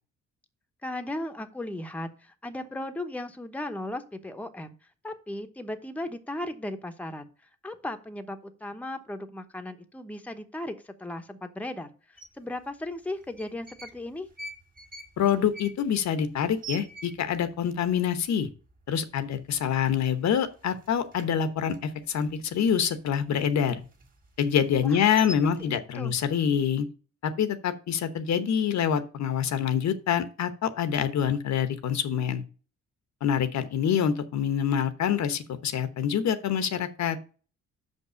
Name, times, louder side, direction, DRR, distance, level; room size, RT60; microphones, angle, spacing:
voice 1, 0.8-4.7 5.0-7.3 7.6-14.3 24.8-25.0 25.6-26.1, left 1 dB, 5° left, 7 dB, 0.9 m, -36 dB
sound 1, 12.2-12.3 13.2-14.0 14.3-17.5 17.8-17.9 18.2-18.7 19.1-19.3 19.6-20.4 20.6-23.0 23.4-25.7, right 2 dB, 30° right, 2.1 m, -44 dB
voice 2, 15.2-18.5 18.9-23.8 24.4-26.9 27.2-32.4 33.2-37.2, left 8 dB, 65° left, 10 dB, 1.0 m, -26 dB
6.0 x 5.4 x 6.7 m, 0.37 s
cardioid pair, 90°, 30 cm